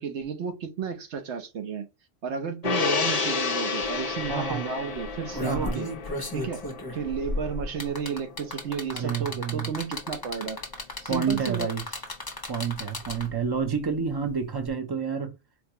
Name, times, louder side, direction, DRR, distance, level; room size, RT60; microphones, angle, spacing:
voice 1, 0.0-1.9 2.2-5.9 6.3-6.6 6.9-10.6 11.0-11.7, right 6 dB, 65° right, 1.1 m, -32 dB
Gong, 2.6-9.3 9.6-9.7, left 5 dB, 50° left, 0.5 m, -31 dB
sound 1, 3.8-3.9 4.2-4.5 5.0-13.5 14.6-14.7, left 2 dB, 20° left, 0.8 m, -34 dB
voice 2, 4.3-4.7 5.4-5.8 8.9-9.7 11.1-11.8 12.5-15.3, right 6 dB, 40° right, 0.3 m, -29 dB
4.4 x 2.2 x 2.8 m
omnidirectional pair, 1.3 m